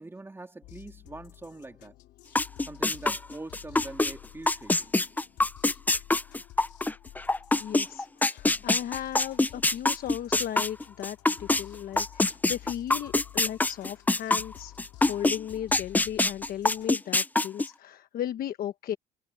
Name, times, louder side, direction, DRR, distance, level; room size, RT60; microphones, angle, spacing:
voice 1, 0.0-1.9 2.6-4.9, right 2 dB, 15° right, 3.2 m, -43 dB
sound 1, 0.6-17.0, left 16 dB, 85° left, 3.2 m, -51 dB
sound 2, 2.4-4.1 4.5-11.6 12.0-15.4 15.7-17.7, left 2 dB, 10° left, 0.6 m, -24 dB
voice 2, 7.6-14.7 15.0-19.0, left 11 dB, 60° left, 1.2 m, -36 dB
cardioid pair, 110°, 17 cm